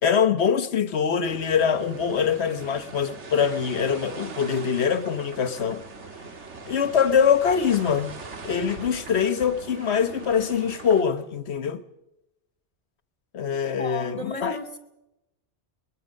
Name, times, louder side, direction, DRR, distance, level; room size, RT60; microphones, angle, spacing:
voice 1, 0.0-5.8 6.7-8.1 8.4-11.8 13.3-14.6, left 7 dB, 70° left, 1.3 m, -23 dB
sound 1, 1.2-11.0, right 4 dB, 85° right, 1.9 m, -41 dB
voice 2, 13.5-14.8, left 2 dB, 30° left, 2.1 m, -34 dB
23.0 x 21.0 x 6.5 m
omnidirectional pair, 1.2 m